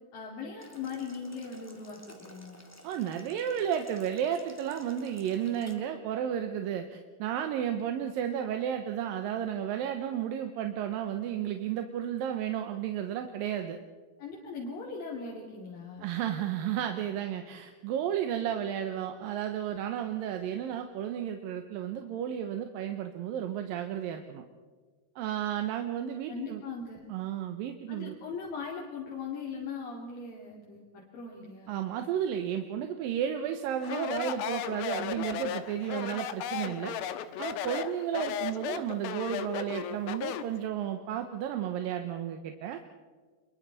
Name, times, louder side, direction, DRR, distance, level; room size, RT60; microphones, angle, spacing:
voice 1, 0.1-2.6 14.2-16.1 26.3-27.1 27.9-31.8, left 5 dB, 70° left, -3 dB, 4.5 m, -40 dB
Boiling, 0.6-5.7, left 1 dB, 5° left, 1.2 m, -54 dB
voice 2, 2.8-13.8 16.0-24.4 25.2-26.6 27.1-28.2 31.7-37.0 37.4-42.8, right 9 dB, 75° right, 6 dB, 2.6 m, -33 dB
Speech, 33.8-40.6, left 10 dB, 85° left, 2.9 m, -35 dB
27.5 x 23.0 x 4.2 m, 1.5 s
omnidirectional pair, 4.3 m